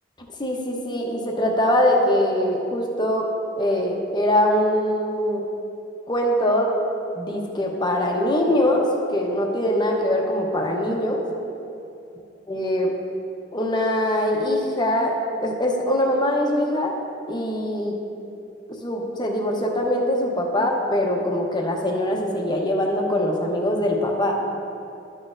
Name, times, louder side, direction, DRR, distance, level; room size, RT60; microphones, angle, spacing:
voice 1, 0.4-3.3 3.5-5.4 6.1-6.7 7.1-11.2 12.5-12.9 13.5-16.9 17.3-18.0 18.8-24.4, left 1 dB, 25° left, 0 dB, 0.9 m, -22 dB
12.0 x 6.1 x 2.6 m, 2.8 s
head